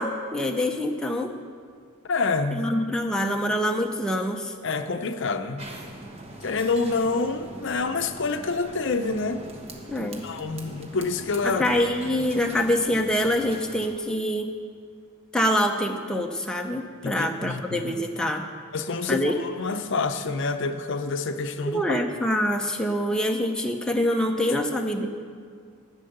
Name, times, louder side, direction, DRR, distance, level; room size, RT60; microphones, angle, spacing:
voice 1, 0.0-1.3 2.5-4.5 9.9-10.2 11.4-14.5 15.3-18.4 19.1-19.3 21.6-25.1, equal, 5° left, 1 dB, 0.6 m, -25 dB
voice 2, 2.0-2.7 4.6-5.7 6.4-9.4 10.2-11.6 17.0-18.0 18.7-22.0, left 4 dB, 60° left, 8 dB, 0.6 m, -27 dB
sound 1, 5.6-13.9, right 1 dB, 30° right, 1.1 m, -42 dB
11.5 x 7.7 x 6.6 m, 2.2 s
head